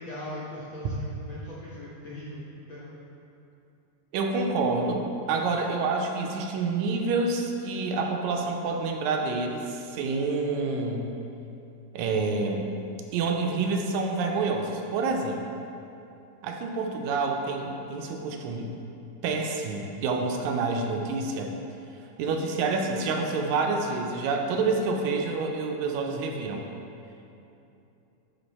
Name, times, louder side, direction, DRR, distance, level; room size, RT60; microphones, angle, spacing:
voice 1, 0.0-2.4 2.7-2.9, left 1 dB, 70° left, -8 dB, 1.1 m, -39 dB
voice 2, 4.1-11.1 11.9-12.7 13.1-15.4 16.4-18.7 19.2-21.5 22.2-26.7, right 3 dB, 80° right, 2 dB, 2.0 m, -28 dB
10.0 x 3.7 x 4.1 m, 2.8 s
omnidirectional pair, 3.3 m